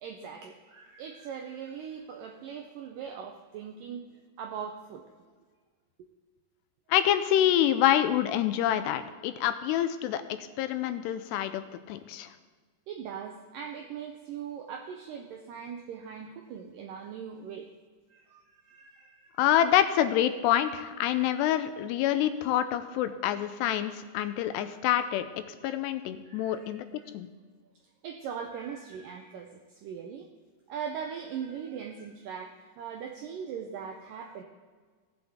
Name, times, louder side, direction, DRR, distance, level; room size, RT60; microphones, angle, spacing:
voice 1, 0.0-4.1 4.4-5.0 6.0-6.1 12.9-17.7 18.1-19.4 26.2-27.1 28.0-30.3 30.7-34.4, right 7 dB, 85° right, 3 dB, 1.9 m, -40 dB
voice 2, 6.9-12.3 19.4-25.2 25.6-27.3, left 11 dB, 85° left, 10 dB, 2.7 m, -27 dB
17.5 x 7.8 x 3.6 m, 1.5 s
omnidirectional pair, 4.8 m